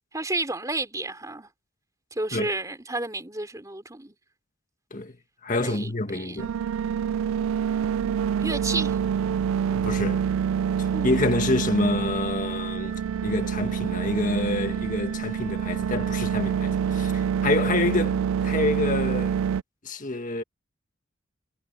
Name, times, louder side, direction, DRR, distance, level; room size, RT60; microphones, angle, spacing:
voice 1, 0.1-1.5 2.1-4.2 5.6-6.4 8.4-9.0 10.9-11.2, right 2 dB, 15° right, 3.8 m, -31 dB
voice 2, 5.4-6.5 9.7-10.2 10.8-19.3 19.8-20.4, left 2 dB, 40° left, 1.8 m, -27 dB
sound 1, 6.4-19.6, right 7 dB, 80° right, 0.3 m, -26 dB
head